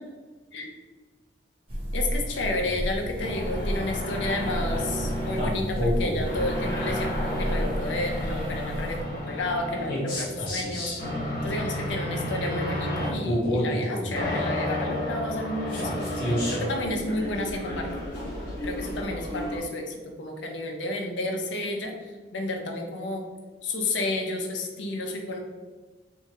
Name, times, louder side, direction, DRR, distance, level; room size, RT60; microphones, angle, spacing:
sound 1, 1.7-9.0, equal, 30° right, 0.6 m, -32 dB
voice 1, 1.9-11.0 11.4-17.9 18.6-21.9 22.3-23.2 23.6-25.4, left 2 dB, 75° left, 2 dB, 0.6 m, -31 dB
sound 2, 3.2-19.6, left 1 dB, 45° left, 1.2 m, -30 dB
2.7 x 2.5 x 4.0 m, 1.3 s
head